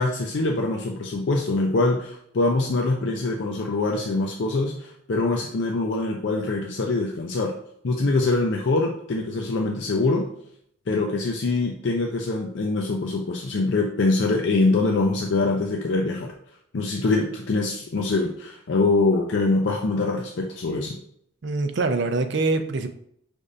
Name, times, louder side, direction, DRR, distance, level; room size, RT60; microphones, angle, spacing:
voice 1, 0.0-7.5 7.8-10.3 10.9-16.3 16.7-21.0, left 3 dB, 65° left, 1 dB, 0.4 m, -24 dB
voice 2, 21.4-22.9, right 3 dB, 60° right, 8 dB, 0.4 m, -24 dB
5.2 x 3.5 x 2.5 m, 0.68 s
head